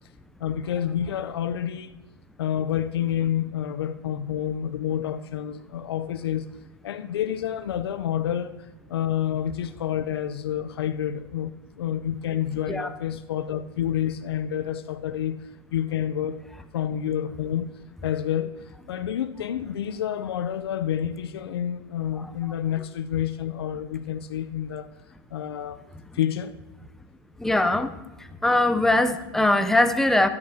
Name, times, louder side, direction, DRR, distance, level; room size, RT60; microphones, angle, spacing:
voice 1, 0.4-2.0 2.4-6.5 6.8-8.5 8.9-15.4 15.7-16.4 16.7-17.7 18.0-18.5 18.9-24.9 25.3-25.8 26.1-26.6, left 10 dB, 80° left, 0.6 m, -28 dB
voice 2, 27.4-27.9 28.4-30.3, left 2 dB, 5° left, 0.5 m, -21 dB
13.0 x 9.6 x 2.8 m
hypercardioid pair, 120°, 13 cm